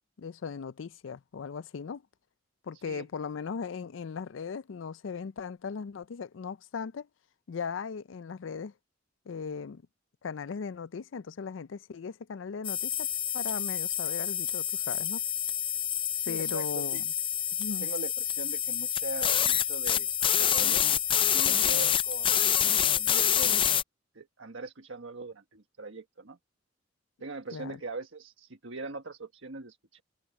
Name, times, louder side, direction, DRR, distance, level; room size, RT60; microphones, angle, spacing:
voice 1, 0.2-2.0 2.6-7.1 7.5-8.7 9.3-9.8 10.2-13.1 13.3-15.2 16.3-17.0 17.6-17.9 27.5-27.8, left 6 dB, 80° left, 0.4 m, -38 dB
voice 2, 2.7-3.0 16.1-17.0 17.8-20.9 21.3-23.8 24.1-26.4 27.2-30.0, right 3 dB, 80° right, 1.4 m, -41 dB
sound 1, 12.6-23.8, left 9 dB, 25° left, 0.5 m, -27 dB
head